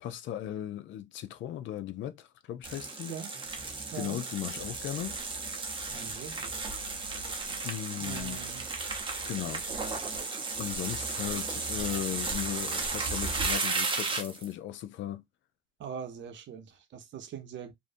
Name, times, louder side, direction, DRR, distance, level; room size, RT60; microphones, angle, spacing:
voice 1, 0.0-3.2 3.9-5.2 7.6-8.4 9.3-9.6 10.6-15.2, left 12 dB, 75° left, 0.4 m, -37 dB
sound 1, 2.6-14.5, right 3 dB, 25° right, 0.7 m, -34 dB
voice 2, 5.9-6.5 8.0-8.7 15.8-17.7, right 8 dB, 70° right, 0.7 m, -42 dB
2.6 x 2.1 x 2.5 m
cardioid pair, 90°, 20 cm